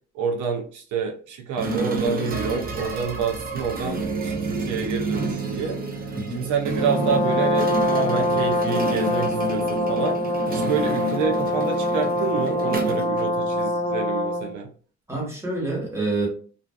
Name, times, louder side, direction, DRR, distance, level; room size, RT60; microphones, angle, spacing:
voice 1, 0.1-5.8 6.3-10.2 10.5-14.7, right 6 dB, 75° right, 3 dB, 0.5 m, -28 dB
sound 1, 1.6-13.8, right 3 dB, 30° right, 0.5 m, -29 dB
voice 2, 6.1-6.4 15.1-16.3, right 2 dB, 10° right, -3 dB, 1.3 m, -27 dB
Brass instrument, 6.8-14.5, left 1 dB, 20° left, 0.7 m, -24 dB
2.4 x 2.4 x 2.3 m, 0.41 s
cardioid pair, 90°, 30 cm